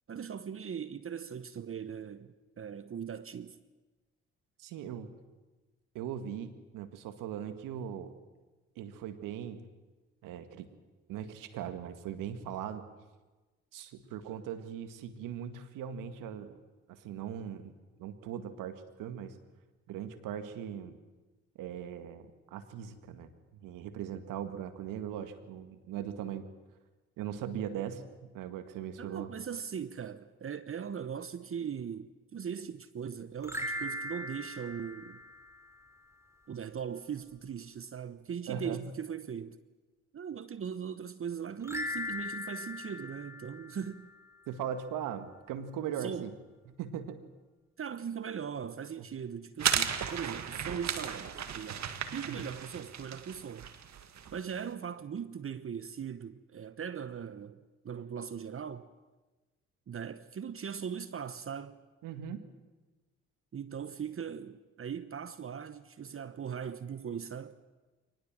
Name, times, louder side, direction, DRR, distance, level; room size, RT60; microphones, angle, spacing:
voice 1, 0.1-3.6 29.0-35.2 36.5-39.6 40.1-44.1 46.0-46.3 47.8-53.7 54.3-58.9 59.9-61.8 63.5-67.6, right 7 dB, 40° right, 1.1 m, -40 dB
voice 2, 4.6-5.1 5.9-8.1 8.8-9.7 10.2-10.7 11.1-12.9 13.7-16.6 16.9-17.7 18.0-19.4 19.9-21.0 21.6-23.3 23.6-26.5 27.2-28.0 28.3-29.3 38.5-38.9 44.5-46.4 46.8-47.2 49.0-49.1 52.3-52.4 62.0-62.5, right 9 dB, 75° right, 2.0 m, -39 dB
sound 1, 33.4-35.9 41.6-44.2, left 1 dB, 10° right, 5.0 m, -39 dB
sound 2, 49.6-54.5, right 8 dB, 55° right, 1.9 m, -35 dB
24.0 x 20.0 x 7.5 m
hypercardioid pair, 50°, 32 cm